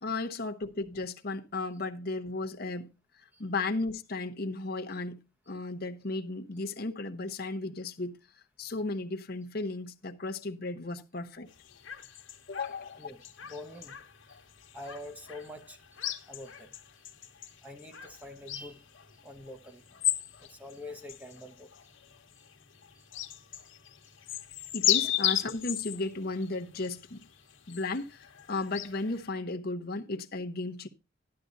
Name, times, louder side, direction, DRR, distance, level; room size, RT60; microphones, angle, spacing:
voice 1, 0.0-2.9 3.2-8.2 8.6-11.5 12.5-13.1 24.7-27.3 27.7-30.9, left 2 dB, 50° left, 0.9 m, -35 dB
sound 1, 11.5-29.3, left 12 dB, 80° left, 1.3 m, -37 dB
voice 2, 12.5-14.0 14.3-14.4 14.7-16.0 16.3-17.1 17.5-18.8 19.1-19.9 20.2-21.9 22.9-23.1 23.5-23.6 24.1-24.2, left 1 dB, 10° right, 1.1 m, -46 dB
11.5 x 11.5 x 2.6 m
head